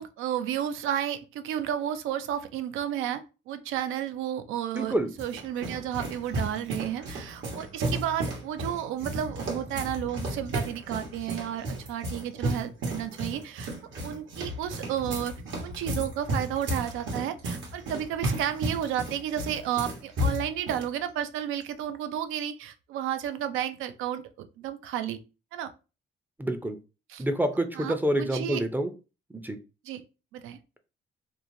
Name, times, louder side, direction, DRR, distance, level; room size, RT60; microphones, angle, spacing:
voice 1, 0.0-13.7 14.0-15.3 15.6-24.2 24.6-25.2 25.5-25.7 27.1-27.2 27.7-28.6 29.8-30.0 30.3-30.6, right 10 dB, 90° right, 10 dB, 0.4 m, -32 dB
voice 2, 4.7-5.1 26.4-26.8 27.2-28.9 29.3-29.6, right 1 dB, 10° right, 7 dB, 0.4 m, -27 dB
sound 1, 4.8-20.9, right 1 dB, 75° right, 1.2 m, -33 dB
3.0 x 2.1 x 2.5 m, 0.30 s
cardioid pair, 90°, 20 cm